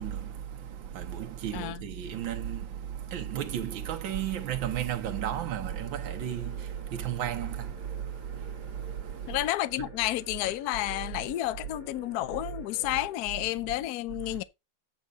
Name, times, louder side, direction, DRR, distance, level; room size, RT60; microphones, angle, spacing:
voice 1, 0.0-9.4 9.8-9.9 14.2-14.4, right 10 dB, 90° right, 1.7 m, -34 dB
sound 1, 5.7-13.1, equal, 45° left, 6.3 m, -50 dB
voice 2, 9.3-14.4, left 16 dB, 65° left, 1.0 m, -31 dB
8.3 x 5.2 x 5.1 m
omnidirectional pair, 2.1 m